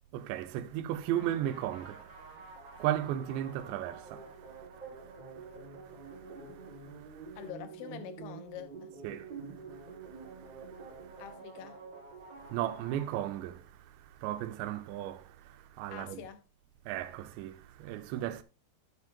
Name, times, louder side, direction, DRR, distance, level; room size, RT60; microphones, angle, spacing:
voice 1, 0.1-7.4 9.0-11.2 12.4-16.2 16.9-18.4, right 12 dB, 90° right, 2.9 m, -37 dB
sound 1, 1.1-13.7, right 4 dB, 40° right, 5.0 m, -48 dB
voice 2, 7.4-8.9 11.2-11.8 15.9-16.4, left 10 dB, 80° left, 2.1 m, -45 dB
9.7 x 9.1 x 2.3 m
omnidirectional pair, 5.0 m